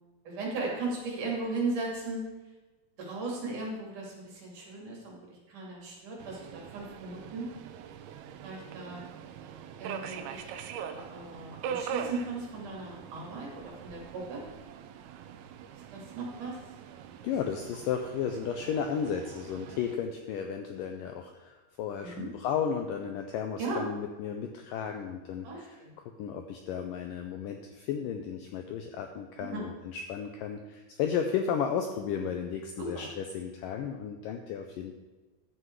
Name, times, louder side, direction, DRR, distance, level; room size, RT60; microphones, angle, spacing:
voice 1, 0.3-2.2 3.0-5.2 5.5-7.5 8.4-9.0 9.8-10.5 10.8-14.4 15.9-16.6 22.0-22.3 23.6-23.8 25.4-25.9 29.5-29.6 32.8-33.0, right 3 dB, 55° right, -3 dB, 3.9 m, -37 dB
Subway metro underground, 6.2-20.0, right 8 dB, 80° right, 2.5 m, -42 dB
voice 2, 17.2-34.9, left 7 dB, 80° left, 5 dB, 1.9 m, -34 dB
12.0 x 7.8 x 4.7 m, 1.2 s
omnidirectional pair, 4.6 m